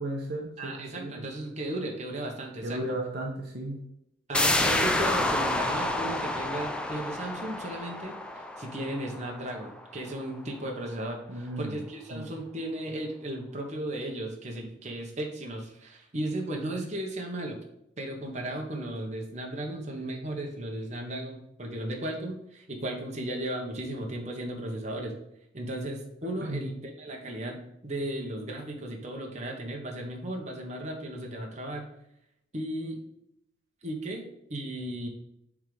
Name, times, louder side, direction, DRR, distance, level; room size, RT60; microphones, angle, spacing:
voice 1, 0.0-0.7 1.0-1.3 2.6-3.8 11.3-11.8 12.1-12.3 26.4-26.7, right 1 dB, 55° right, 0 dB, 1.1 m, -34 dB
voice 2, 0.6-2.8 4.3-17.6 18.0-25.1 25.5-31.9 32.5-33.0 33.8-35.1, right 1 dB, 40° right, 0 dB, 1.3 m, -35 dB
sound 1, 4.3-9.8 10.2-10.3, left 1 dB, 5° left, 0.5 m, -29 dB
7.2 x 3.8 x 5.1 m, 0.78 s
head